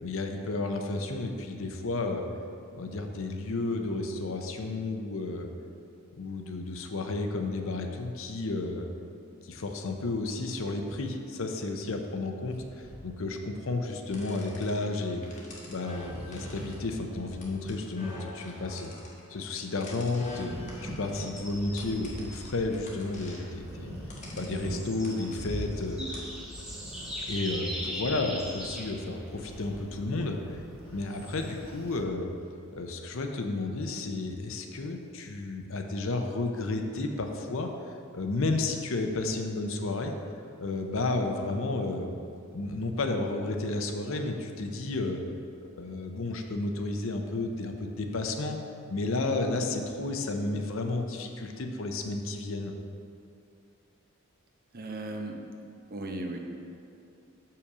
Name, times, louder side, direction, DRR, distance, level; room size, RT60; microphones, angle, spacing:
voice 1, 0.0-2.2 2.7-5.5 6.2-8.9 9.4-15.2 15.7-18.9 19.3-20.5 20.8-23.9 24.4-26.0 27.3-30.6 30.9-32.3 32.7-37.7 38.1-40.1 40.6-42.1 42.5-45.2 45.8-48.6 48.9-52.7, left 2 dB, 70° left, 4 dB, 0.7 m, -32 dB
sound 1, 12.5-13.7 15.3-15.4 15.7-17.7 17.9-18.0 19.9-22.5 23.5-24.8 25.0-26.0 26.4-27.8 29.3-29.8 30.9-32.0, equal, 30° right, 1.4 m, -43 dB
sound 2, 14.0-26.4, left 1 dB, 35° left, 1.3 m, -48 dB
sound 3, 21.2-32.1, equal, 5° right, 1.2 m, -42 dB
voice 2, 54.7-55.4 55.9-56.4, right 2 dB, 45° right, 2 dB, 0.8 m, -36 dB
6.8 x 5.7 x 4.9 m, 2.6 s
head